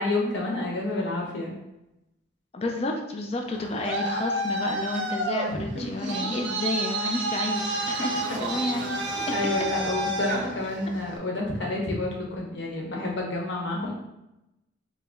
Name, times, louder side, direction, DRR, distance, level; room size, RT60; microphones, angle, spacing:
voice 1, 0.0-1.5 5.5-6.1 8.0-8.4 9.3-13.9, left 2 dB, 65° left, -1 dB, 0.9 m, -29 dB
voice 2, 2.5-8.1 8.4-9.0 9.2-9.3, left 2 dB, 30° left, 3 dB, 0.3 m, -30 dB
Traffic noise roadway noise, 3.5-11.2, right 1 dB, 65° right, 0.6 m, -30 dB
4.8 x 2.1 x 3.6 m, 0.91 s
head